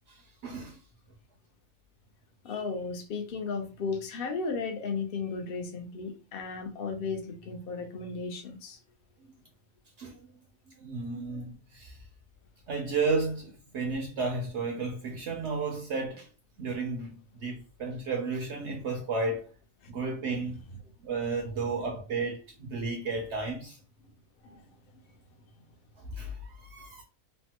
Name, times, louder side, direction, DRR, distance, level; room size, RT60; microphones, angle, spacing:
voice 1, 0.1-0.8 10.0-10.2 10.8-12.0 12.7-16.3 16.6-19.5 19.9-20.6 21.0-23.8 26.0-27.0, right 3 dB, 70° right, 0.7 m, -33 dB
voice 2, 2.4-8.8 24.4-24.6, left 4 dB, 65° left, 0.5 m, -35 dB
3.2 x 2.1 x 2.8 m
omnidirectional pair, 1.7 m